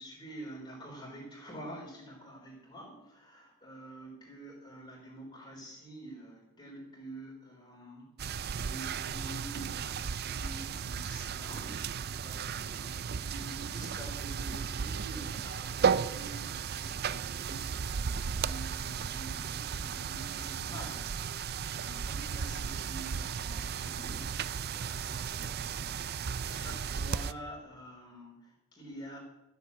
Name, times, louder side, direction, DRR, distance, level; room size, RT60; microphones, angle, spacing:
voice 1, 0.0-24.3 24.7-29.2, right 1 dB, 20° left, -5 dB, 3.9 m, -48 dB
sound 1, 8.2-27.3, right 6 dB, 45° right, 0.4 m, -35 dB
14.0 x 8.1 x 8.3 m, 0.95 s
head